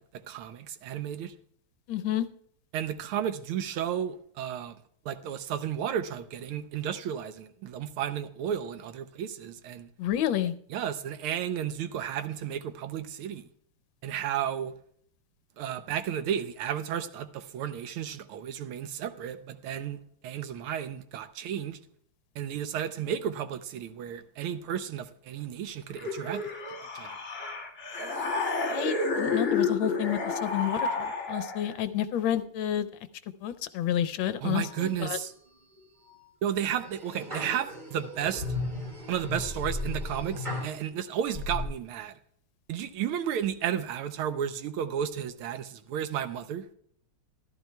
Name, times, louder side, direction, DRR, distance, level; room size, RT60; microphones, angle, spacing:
voice 1, 0.1-1.3 2.7-4.8 5.0-9.9 10.7-13.4 14.0-14.7 15.6-21.8 22.4-26.4 26.9-27.1 34.4-35.3 36.4-38.4 39.1-42.1 42.7-46.7, right 9 dB, 85° right, 1.6 m, -33 dB
voice 2, 1.9-2.3 10.0-10.5 28.7-32.9 33.4-35.2, left 11 dB, 75° left, 1.4 m, -30 dB
sound 1, 26.0-31.8, left 4 dB, 35° left, 2.4 m, -30 dB
sound 2, 34.6-35.3 35.8-36.2 36.8-40.8 41.3-41.6, left 2 dB, 20° right, 2.0 m, -36 dB
14.0 x 12.0 x 2.2 m
omnidirectional pair, 2.3 m